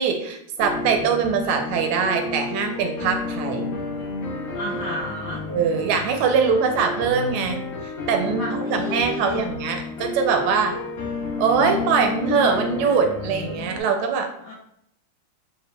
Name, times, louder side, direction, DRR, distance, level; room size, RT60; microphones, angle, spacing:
voice 1, 0.0-3.8 5.5-7.6 8.1-10.8 11.4-14.3, right 6 dB, 80° right, 5 dB, 1.4 m, -22 dB
sound 1, 0.6-13.8, left 3 dB, 65° left, 1.6 m, -31 dB
voice 2, 4.5-5.4 8.4-9.5 14.4-14.5, left 1 dB, 80° left, -3 dB, 0.9 m, -32 dB
5.1 x 2.1 x 2.2 m, 0.73 s
omnidirectional pair, 2.4 m